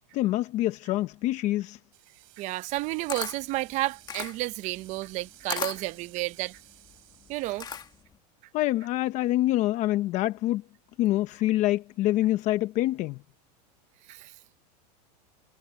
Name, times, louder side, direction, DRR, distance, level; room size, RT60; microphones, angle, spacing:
voice 1, 0.1-1.8 8.5-10.6 11.0-13.2, left 15 dB, 35° left, 0.9 m, -26 dB
sound 1, 1.9-8.0, right 32 dB, 55° right, 6.0 m, -55 dB
voice 2, 2.4-6.6 7.3-7.7 14.1-14.3, right 19 dB, 35° right, 0.6 m, -31 dB
Camera, 2.7-8.2, left 7 dB, 20° left, 1.9 m, -38 dB
supercardioid pair, 150°, 21 cm